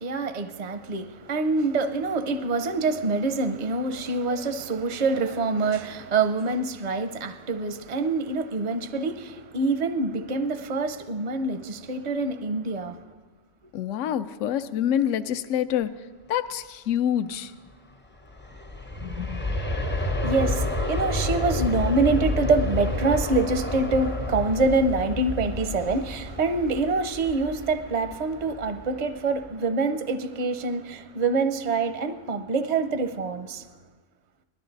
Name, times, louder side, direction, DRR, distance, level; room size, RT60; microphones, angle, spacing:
voice 1, 0.0-13.0 19.8-33.6, right 3 dB, 50° right, 9 dB, 0.5 m, -26 dB
voice 2, 13.7-15.9 16.3-17.5 19.0-19.4, left 10 dB, 75° left, 11 dB, 0.9 m, -26 dB
Aircraft, 18.2-29.0 29.4-29.5, left 2 dB, 15° left, 0.5 m, -30 dB
20.0 x 12.5 x 3.9 m, 1.3 s
omnidirectional pair, 1.3 m